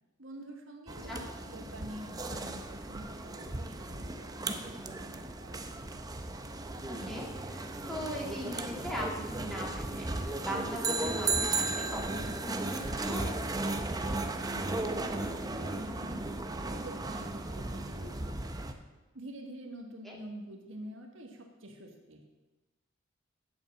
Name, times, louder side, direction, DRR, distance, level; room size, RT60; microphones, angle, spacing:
voice 1, 0.2-5.8 14.0-16.2 16.7-18.8 19.1-22.2, right 1 dB, 80° right, 2 dB, 1.6 m, -47 dB
sound 1, 0.9-18.7, right 2 dB, 20° right, 0.7 m, -35 dB
voice 2, 7.0-13.3 20.0-20.1, equal, ahead, -4 dB, 2.2 m, -40 dB
8.5 x 7.2 x 7.3 m, 1.1 s
head